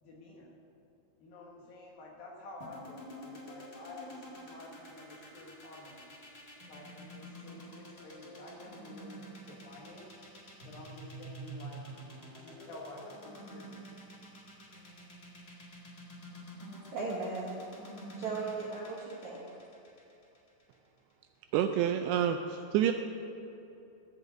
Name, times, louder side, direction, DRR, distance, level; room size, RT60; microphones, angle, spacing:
voice 1, 0.0-0.5 1.2-6.1 6.7-10.1 10.6-13.9, left 2 dB, 65° left, -2 dB, 2.7 m, -50 dB
sound 1, 2.6-20.7, right 1 dB, 80° left, 0.8 m, -48 dB
voice 2, 16.6-17.7 18.2-19.4, right 3 dB, 65° right, -5 dB, 1.8 m, -37 dB
voice 3, 21.5-22.9, right 10 dB, 85° right, 6 dB, 2.5 m, -28 dB
15.5 x 5.6 x 8.0 m, 2.8 s
omnidirectional pair, 5.3 m